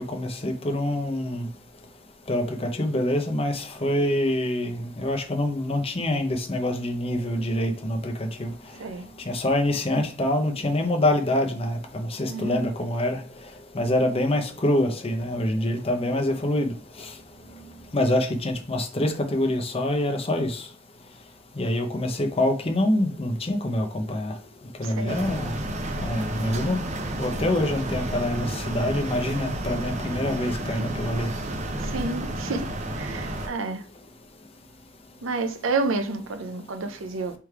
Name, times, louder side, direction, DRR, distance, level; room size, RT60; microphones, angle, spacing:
voice 1, 0.0-1.5 2.3-8.5 9.2-13.2 13.7-17.1 17.9-20.7 21.6-24.4 24.8-25.5 26.0-26.8 27.2-31.3, left 1 dB, 30° left, 0.7 m, -25 dB
voice 2, 12.3-12.7 24.8-25.2 31.8-32.7 32.9-33.8 35.2-37.3, right 3 dB, 75° right, 0.6 m, -29 dB
sound 1, 25.1-33.5, right 1 dB, 35° right, 0.6 m, -31 dB
3.5 x 3.2 x 4.7 m
head